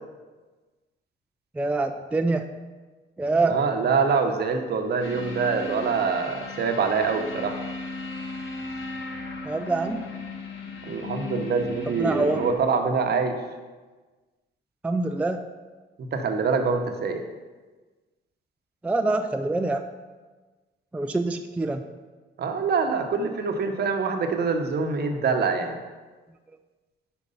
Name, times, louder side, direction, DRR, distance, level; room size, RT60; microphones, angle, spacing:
voice 1, 1.6-2.4 3.2-3.6 9.4-10.0 12.0-12.5 14.8-15.4 18.8-19.8 20.9-21.8, right 2 dB, 5° right, 7 dB, 0.3 m, -25 dB
voice 2, 3.4-7.6 10.8-13.4 16.0-17.2 22.4-25.8, right 5 dB, 55° right, 5 dB, 0.8 m, -25 dB
sound 1, 5.0-12.5, left 3 dB, 80° left, 1.0 m, -36 dB
5.1 x 4.5 x 5.5 m, 1.3 s
cardioid pair, 90°, 20 cm